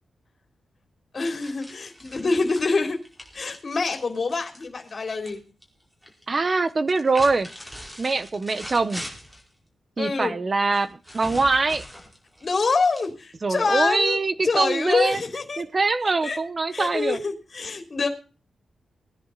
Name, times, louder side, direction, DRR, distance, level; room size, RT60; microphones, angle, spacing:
voice 1, 1.1-3.0 3.3-5.4 10.0-10.3 12.4-14.2 14.4-15.6 16.2-16.4 16.7-18.1, left 4 dB, 40° left, 3 dB, 3.6 m, -25 dB
sound 1, 1.4-5.4 5.6-6.2 6.8-9.5 10.7-13.4, equal, 10° right, 4.9 m, -41 dB
voice 2, 6.3-7.5 8.0-9.0 10.0-11.8 13.4-15.2 15.6-17.2, right 3 dB, 35° right, 13 dB, 1.2 m, -23 dB
20.5 x 10.5 x 4.2 m, 0.35 s
wide cardioid pair, 125°, 0 cm